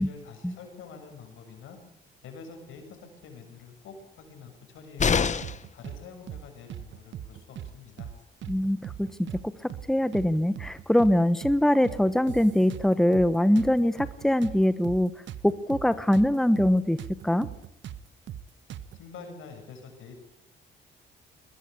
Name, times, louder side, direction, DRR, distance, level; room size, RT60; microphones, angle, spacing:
voice 1, 0.0-1.8 2.2-5.3 5.7-8.1 19.0-20.2, left 5 dB, 80° left, 6 dB, 7.0 m, -46 dB
sound 1, 5.0-5.7 7.7-7.8 8.1-8.2, left 6 dB, 35° left, 1.3 m, -25 dB
sound 2, 5.4-6.0 6.3-6.4 6.7-7.7 8.0-8.1 8.4-9.4 9.7-9.9 10.1-11.1 11.4-11.6 11.8-13.3 13.6-16.3 16.6-16.7 17.0-19.0, right 11 dB, 70° right, 1.2 m, -40 dB
voice 2, 8.5-9.1 9.6-15.1 15.4-17.0 17.2-17.5, left 1 dB, ahead, 13 dB, 1.2 m, -23 dB
22.0 x 21.0 x 8.5 m, 0.74 s
cardioid pair, 90°, 20 cm